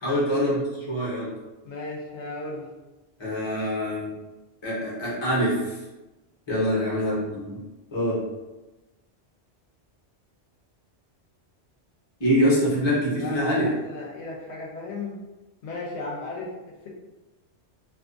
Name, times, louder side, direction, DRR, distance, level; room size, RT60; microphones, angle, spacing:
voice 1, 0.0-1.3 3.2-4.1 4.6-5.8 6.5-7.6 7.9-8.2 12.2-13.7, equal, 25° left, -6 dB, 0.8 m, -24 dB
voice 2, 1.6-2.7 6.6-6.9 12.8-12.9 13.2-15.2 15.6-16.6, left 3 dB, 75° left, -3 dB, 0.8 m, -35 dB
2.4 x 2.3 x 2.5 m, 1.1 s
omnidirectional pair, 1.1 m